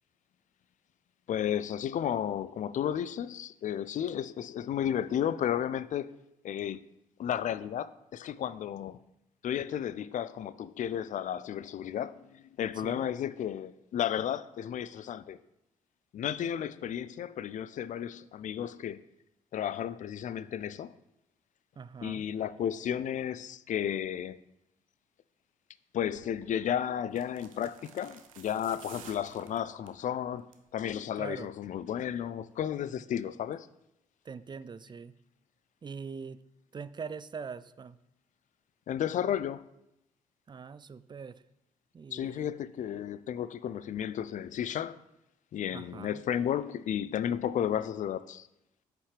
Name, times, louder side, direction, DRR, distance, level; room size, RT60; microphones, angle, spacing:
voice 1, 1.3-6.1 6.4-6.8 7.2-9.0 9.4-15.4 16.1-19.0 19.5-20.9 22.0-24.4 25.9-30.5 30.7-33.7 38.9-39.7 42.1-45.0 45.5-48.5, left 9 dB, 50° left, 0.4 m, -33 dB
voice 2, 12.8-13.1 21.8-22.3 31.2-31.5 34.2-35.1 35.8-36.4 36.7-38.0 40.5-41.4 41.9-42.5 45.7-46.2, right 5 dB, 25° right, 0.4 m, -42 dB
sound 1, 26.0-26.3 27.1-30.0 30.4-30.7 31.0-31.1, right 8 dB, 90° right, 0.5 m, -52 dB
8.1 x 4.9 x 3.3 m
hypercardioid pair, 40°, 17 cm